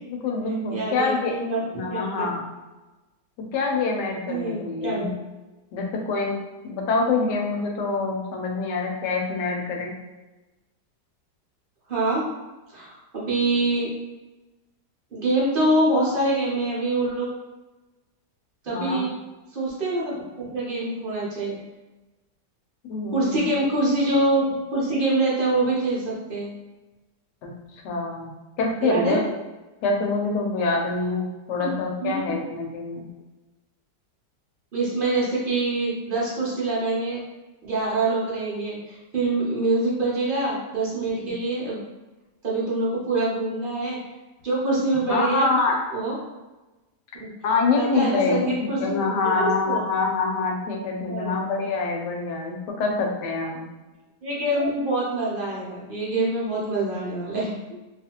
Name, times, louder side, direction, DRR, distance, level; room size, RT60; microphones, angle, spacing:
voice 1, 0.1-1.4 1.7-2.5 3.5-5.1 5.7-6.4 6.6-9.9 18.7-19.1 22.9-23.5 27.4-29.2 29.8-33.0 41.2-41.3 45.1-45.7 47.4-48.4 48.8-53.6, left 3 dB, 85° left, 0 dB, 1.2 m, -25 dB
voice 2, 0.7-1.6 1.9-2.3 4.3-5.1 11.9-12.3 12.7-13.9 15.1-17.3 18.6-19.1 19.5-21.6 23.1-24.5 24.7-26.5 28.8-29.2 31.6-31.7 32.0-32.4 34.7-37.2 37.6-41.8 42.4-44.0 44.4-45.5 45.9-46.1 47.2-47.3 47.7-49.0 49.2-49.8 51.1-51.3 54.2-57.5, right 2 dB, 55° right, -6 dB, 0.6 m, -25 dB
2.7 x 2.4 x 2.8 m, 1.1 s
omnidirectional pair, 1.8 m